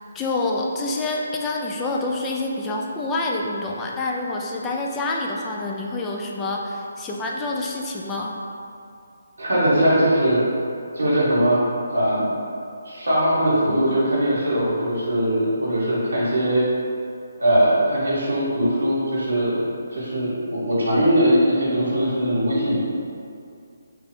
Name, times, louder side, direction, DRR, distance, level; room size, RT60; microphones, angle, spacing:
voice 1, 0.0-8.4, left 2 dB, 15° left, -1 dB, 0.3 m, -27 dB
voice 2, 9.4-10.4 10.9-11.6 11.9-12.3 12.8-16.6 17.4-19.6 19.9-22.8, right 1 dB, 85° right, -9 dB, 1.0 m, -20 dB
3.3 x 2.3 x 3.5 m, 2.5 s
figure-of-eight pair, 150°, 0 cm